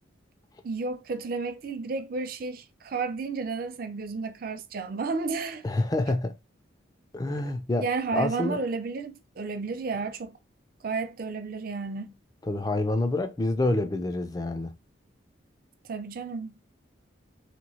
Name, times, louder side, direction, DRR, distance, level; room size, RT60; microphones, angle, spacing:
voice 1, 0.6-5.6 7.8-10.4 10.8-12.1 15.9-16.6, right 4 dB, 45° right, 0.4 m, -32 dB
voice 2, 5.6-6.3 7.1-8.6 12.5-14.7, left 2 dB, 20° left, 0.3 m, -27 dB
2.9 x 2.6 x 2.8 m
head